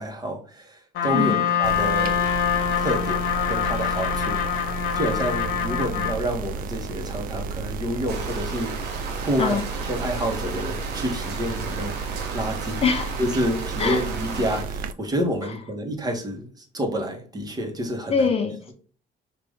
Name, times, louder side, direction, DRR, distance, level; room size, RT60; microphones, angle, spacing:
voice 1, 0.0-2.3 2.8-12.0 12.3-12.8 13.2-18.3, equal, 25° right, 1.1 m, -29 dB
Trumpet, 0.9-6.2, left 9 dB, 75° left, 1.0 m, -25 dB
voice 2, 1.1-1.5 9.4-9.7 12.8-13.2 13.8-14.0 18.1-18.7, left 5 dB, 35° left, 0.6 m, -23 dB
sound 1, 1.6-14.9, right 5 dB, 55° right, 0.4 m, -32 dB
sound 2, 8.1-14.6, right 4 dB, 85° right, 1.2 m, -35 dB
5.1 x 2.6 x 3.4 m
cardioid pair, 110°, 17 cm